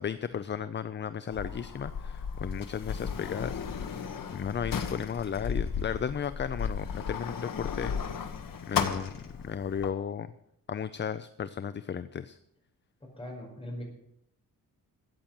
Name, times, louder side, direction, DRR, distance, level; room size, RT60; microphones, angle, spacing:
voice 1, 0.0-3.6 3.9-7.9 8.7-9.1 9.4-10.3 10.7-12.4, left 7 dB, 35° left, 14 dB, 0.5 m, -34 dB
Sliding door, 1.3-9.9, left 6 dB, 75° left, 1.6 m, -35 dB
voice 2, 13.0-13.8, left 1 dB, 15° left, 0 dB, 5.1 m, -40 dB
14.0 x 8.7 x 7.7 m, 0.78 s
wide cardioid pair, 140°, 34 cm